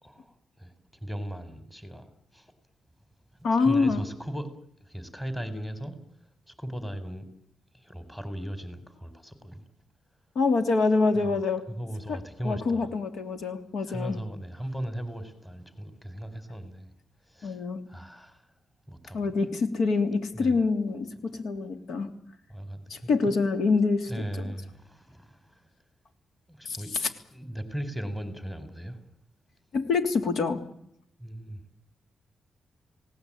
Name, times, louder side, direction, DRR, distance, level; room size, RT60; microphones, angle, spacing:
voice 1, 0.0-0.7 1.0-2.5 3.3-4.5 4.8-6.0 6.5-7.3 7.7-9.7 11.1-11.3 11.7-12.9 13.8-16.9 17.2-17.6 17.9-18.5 18.9-19.4 20.3-20.6 21.3-21.4 22.5-23.3 24.1-25.7 26.5-26.9 27.3-29.0 31.2-31.6, equal, 10° left, 10 dB, 4.3 m, -38 dB
voice 2, 3.4-4.0 10.3-11.7 12.1-12.2 12.4-14.2 17.4-17.8 19.1-22.1 22.9-24.5 26.6-27.1 29.7-30.6, left 4 dB, 80° left, 8 dB, 3.1 m, -26 dB
29.5 x 18.0 x 8.8 m, 0.74 s
cardioid pair, 120°, 0 cm